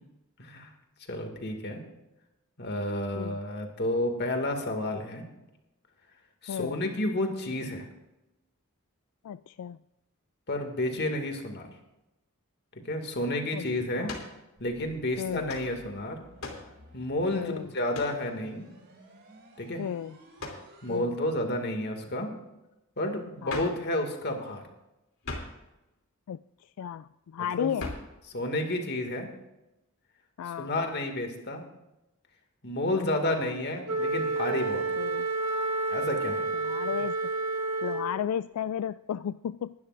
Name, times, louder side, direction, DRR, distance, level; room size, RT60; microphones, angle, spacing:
voice 1, 0.4-0.7 1.1-1.8 2.6-5.3 6.4-7.9 10.5-11.7 12.8-14.1 14.6-16.2 16.9-18.7 19.6-19.8 20.8-22.3 23.0-24.7 27.6-27.7 28.3-29.3 30.6-31.6 32.6-35.0 35.9-36.5, left 1 dB, 50° left, 4 dB, 2.2 m, -31 dB
voice 2, 6.5-6.8 9.2-9.8 13.5-13.6 14.0-14.1 15.2-15.6 17.3-17.7 19.8-20.2 20.9-21.2 23.4-23.7 26.3-26.4 26.8-27.9 30.4-30.7 32.9-33.5 35.0-35.3 36.6-37.2 37.8-39.7, left 9 dB, 85° left, 15 dB, 0.3 m, -34 dB
sound 1, 14.0-14.4 15.5-15.7 16.4-16.7 17.9-18.2 20.4-20.7 23.5-23.8 25.2-25.6 27.8-28.1, left 2 dB, 70° left, 2.9 m, -38 dB
sound 2, 14.6-21.0, right 1 dB, 50° right, 4.2 m, -55 dB
Wind instrument woodwind instrument, 33.9-38.2, right 3 dB, 85° right, 1.3 m, -30 dB
20.5 x 12.0 x 2.5 m, 0.95 s
head